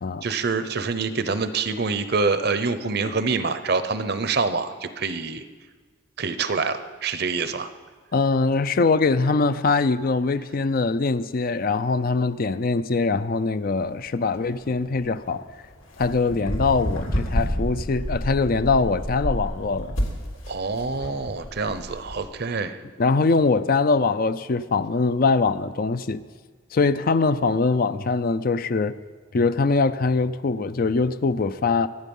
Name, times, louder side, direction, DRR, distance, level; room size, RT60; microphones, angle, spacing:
voice 1, 0.2-5.4 6.2-7.7 20.5-22.8, right 4 dB, 50° right, 0.7 m, -26 dB
voice 2, 8.1-15.4 16.0-20.0 23.0-26.2 26.7-28.9 29.3-31.9, left 4 dB, 45° left, 0.4 m, -22 dB
sound 1, 13.8-22.2, equal, 80° left, 2.9 m, -30 dB
23.5 x 9.2 x 5.4 m
head